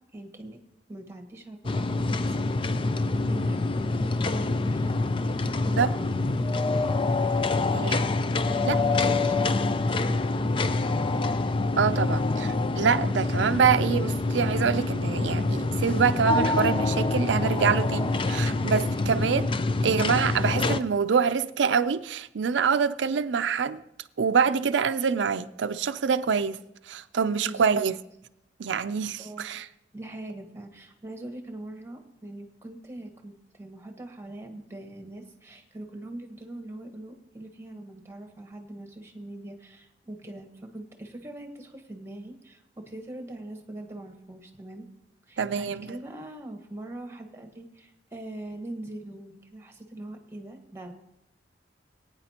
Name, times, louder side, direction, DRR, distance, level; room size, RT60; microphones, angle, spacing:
voice 1, 0.1-0.6 0.9-4.9 5.4-6.4 7.5-8.2 8.5-10.5 27.4-27.8 29.2-29.5 29.9-33.3 33.6-44.8 45.3-50.9, right 1 dB, 15° right, 1.3 m, -42 dB
sound 1, 1.6-20.8, left 3 dB, 30° left, 0.4 m, -26 dB
voice 2, 11.8-19.5 19.8-23.8 24.2-26.6 26.9-27.9 28.6-29.7 45.4-45.9, right 6 dB, 85° right, 0.5 m, -25 dB
20.0 x 9.4 x 2.9 m
head